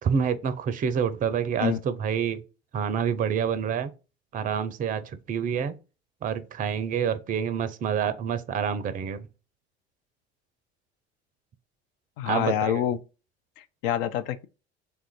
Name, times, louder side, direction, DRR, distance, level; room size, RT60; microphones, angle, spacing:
voice 1, 0.0-2.4 2.7-3.9 4.3-5.8 6.2-9.3 12.3-12.8, right 7 dB, 25° right, 0.5 m, -27 dB
voice 2, 12.2-13.0 13.6-14.5, left 10 dB, 60° left, 0.5 m, -27 dB
3.4 x 2.4 x 4.4 m
figure-of-eight pair, 60°, 33 cm